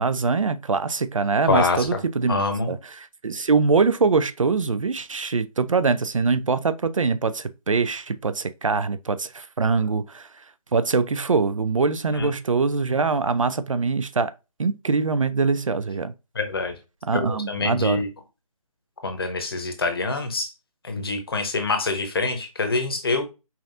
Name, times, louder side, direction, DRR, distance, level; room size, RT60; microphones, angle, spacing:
voice 1, 0.0-10.3 10.7-14.3 14.6-16.1 17.1-18.0, right 4 dB, 60° right, 0.4 m, -23 dB
voice 2, 1.5-2.0 2.3-2.7 12.2-12.3 16.3-16.7 17.1-18.1 19.0-20.5 20.8-23.2, left 3 dB, 40° left, 0.9 m, -25 dB
5.6 x 2.6 x 2.5 m
figure-of-eight pair, 160°, 19 cm